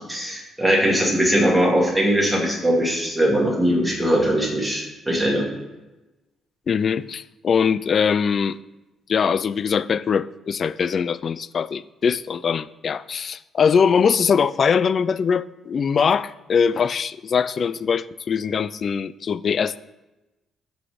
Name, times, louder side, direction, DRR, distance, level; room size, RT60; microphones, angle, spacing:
voice 1, 0.1-5.4, equal, 5° right, -3 dB, 2.3 m, -20 dB
voice 2, 6.7-8.6 9.1-19.8, left 6 dB, 45° left, 16 dB, 0.3 m, -22 dB
12.5 x 4.2 x 5.0 m, 1.0 s
cardioid pair, 120°, 0 cm